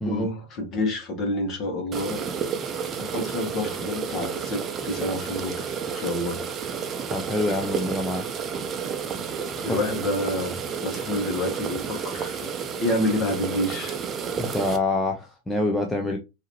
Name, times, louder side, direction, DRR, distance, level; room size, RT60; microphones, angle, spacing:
voice 1, 0.1-2.3 3.0-6.4 9.6-12.5 12.8-14.0, left 1 dB, 35° left, 1.6 m, -28 dB
sound 1, 1.9-14.8, right 6 dB, 25° right, 0.7 m, -31 dB
voice 2, 7.1-8.3 9.7-9.8 14.4-16.2, left 2 dB, 10° left, 0.7 m, -26 dB
4.8 x 2.9 x 3.0 m
figure-of-eight pair, 90°, 0 cm